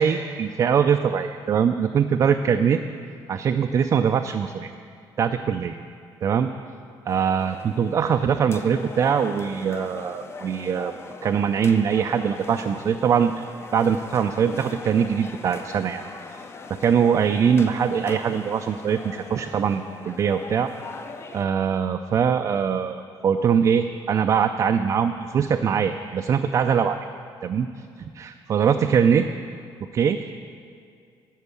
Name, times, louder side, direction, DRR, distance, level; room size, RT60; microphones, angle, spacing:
voice 1, 0.0-2.8 3.3-4.7 5.2-5.8 6.2-6.5 7.1-11.0 11.2-16.0 16.3-20.7 21.3-27.0 27.4-27.7 28.0-29.3 29.9-30.3, right 7 dB, 40° right, 6 dB, 0.3 m, -22 dB
sound 1, 7.1-21.5, left 4 dB, 30° left, 0.5 m, -40 dB
12.0 x 4.5 x 8.3 m, 2.3 s
cardioid pair, 125°, 9 cm